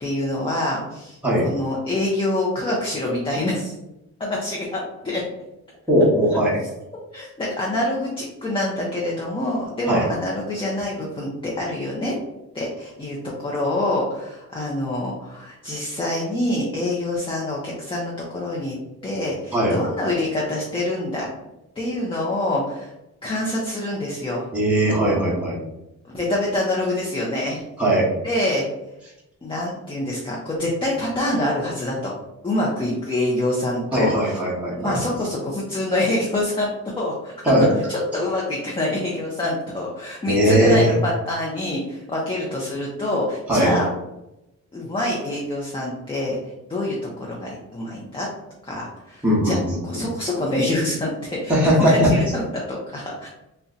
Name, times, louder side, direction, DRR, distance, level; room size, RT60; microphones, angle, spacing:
voice 1, 0.0-3.8 4.2-5.2 7.1-12.1 12.5-18.8 19.0-21.3 21.8-22.9 23.2-24.5 26.1-27.6 28.2-28.7 29.4-32.1 32.4-34.4 34.8-36.7 37.0-37.3 37.9-43.9 44.7-46.4 46.7-48.3 48.6-49.6 49.8-53.3, left 1 dB, 15° left, -4 dB, 0.5 m, -26 dB
voice 2, 5.9-6.6 9.9-10.1 19.5-19.8 24.5-25.6 27.8-28.1 33.9-35.0 37.4-37.7 40.3-40.9 43.5-43.7 49.2-49.8 51.5-52.1, equal, 5° right, -6 dB, 0.9 m, -19 dB
2.6 x 2.2 x 3.7 m, 0.92 s
cardioid pair, 130°, 32 cm